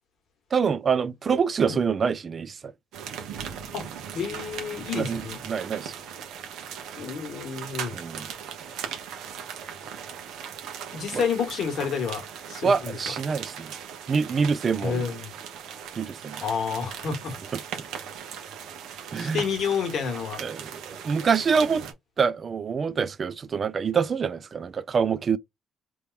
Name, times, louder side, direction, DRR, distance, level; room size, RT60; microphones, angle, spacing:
voice 1, 0.5-2.7 4.9-5.9 7.9-8.3 11.1-11.2 12.6-13.7 14.1-15.1 16.0-16.4 17.5-17.6 19.1-19.4 20.4-21.8 22.2-25.4, right 6 dB, 30° right, 0.3 m, -26 dB
sound 1, 2.9-21.9, right 8 dB, 70° right, 1.0 m, -39 dB
voice 2, 4.1-5.4 7.0-7.9 10.9-12.2 12.5-13.0 14.8-15.3 16.4-17.3 19.1-20.4, left 6 dB, 45° left, 1.3 m, -29 dB
3.5 x 3.0 x 2.4 m
cardioid pair, 175°, 0 cm